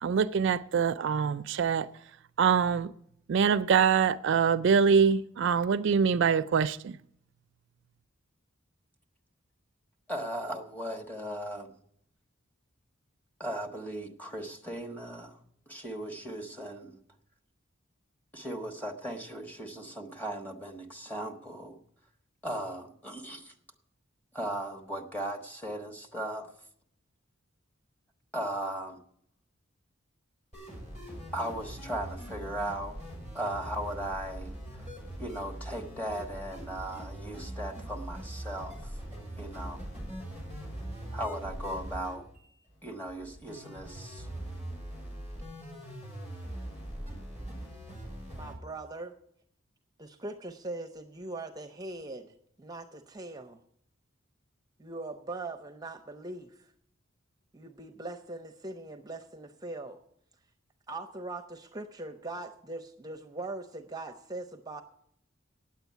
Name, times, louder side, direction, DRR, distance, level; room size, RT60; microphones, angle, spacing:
voice 1, 0.0-1.9 2.4-2.9 3.3-7.0, right 6 dB, 65° right, 0.4 m, -24 dB
voice 2, 10.1-11.8 13.4-15.4 15.7-17.0 18.3-21.8 22.4-23.5 24.3-26.5 28.3-29.0 31.3-33.0 33.3-34.9 35.2-39.0 39.4-39.8 41.1-42.3 42.8-44.3, right 1 dB, 10° left, 1.3 m, -37 dB
sound 1, 30.5-48.5, right 1 dB, 35° left, 5.7 m, -42 dB
voice 3, 48.4-49.1 50.0-53.6 54.8-56.7 57.5-60.0 60.9-64.8, right 2 dB, 20° right, 0.6 m, -41 dB
9.3 x 8.1 x 9.2 m
head